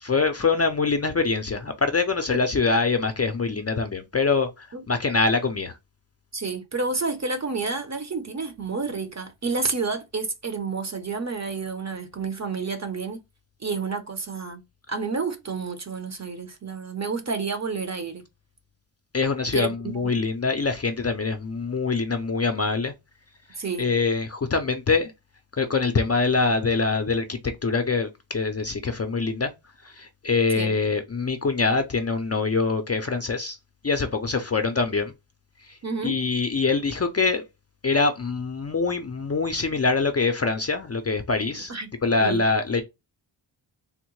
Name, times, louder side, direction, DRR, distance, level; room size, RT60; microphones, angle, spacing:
voice 1, 0.0-5.7 19.1-22.9 23.8-25.1 25.6-29.5 29.8-33.6 33.8-35.1 36.0-37.4 37.8-41.7 42.0-42.8, left 4 dB, 35° left, 0.4 m, -24 dB
voice 2, 6.3-13.2 13.6-14.6 14.9-18.2 19.5-20.2 23.6-23.9 30.5-30.7 35.8-36.2 41.7-41.9 42.2-42.4, right 4 dB, 35° right, 0.7 m, -30 dB
3.5 x 2.1 x 3.0 m
wide cardioid pair, 65°, 47 cm